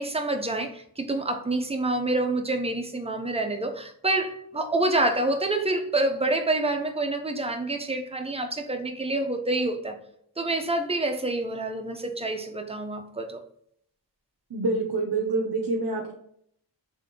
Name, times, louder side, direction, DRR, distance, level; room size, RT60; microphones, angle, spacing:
voice 1, 0.0-10.0 10.4-13.4, right 2 dB, 15° right, 5 dB, 0.8 m, -27 dB
voice 2, 14.5-16.1, right 3 dB, 60° right, 0 dB, 0.8 m, -26 dB
4.2 x 3.3 x 3.7 m, 0.68 s
wide cardioid pair, 40°, 43 cm